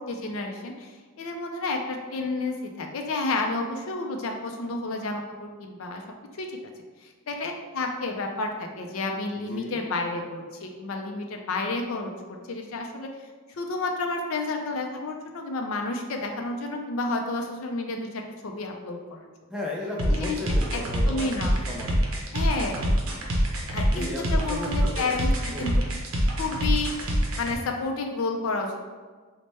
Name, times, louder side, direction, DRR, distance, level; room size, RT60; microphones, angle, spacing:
voice 1, 0.0-6.0 6.3-6.5 7.0-13.1 13.5-19.3 20.2-20.4 20.7-21.6 22.3-22.9 23.7-25.7 26.4-28.8, left 3 dB, 65° left, 3 dB, 0.4 m, -31 dB
voice 2, 9.3-9.8 19.5-21.3 21.7-22.1 23.9-25.1 25.5-25.8, left 1 dB, 5° right, -3 dB, 0.4 m, -35 dB
sound 1, 20.0-27.5, equal, 65° right, 0.6 m, -26 dB
3.2 x 2.1 x 4.1 m, 1.4 s
head